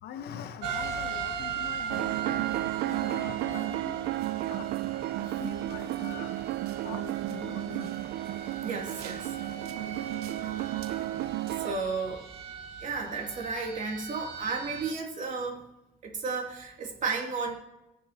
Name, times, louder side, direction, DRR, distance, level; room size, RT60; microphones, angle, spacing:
voice 1, 0.0-4.1 4.5-4.7 5.2-6.4 6.7-8.0 9.2-9.3, left 8 dB, 70° left, 9 dB, 1.1 m, -43 dB
sound 1, 0.6-14.9, right 7 dB, 90° right, 1.7 m, -39 dB
sound 2, 1.9-11.8, right 16 dB, 70° right, 0.4 m, -33 dB
voice 2, 8.6-9.3 11.6-12.2 12.8-15.7 16.0-17.5, right 4 dB, 50° right, 0 dB, 2.7 m, -33 dB
20.5 x 6.9 x 2.9 m, 0.92 s
cardioid pair, 110°, 17 cm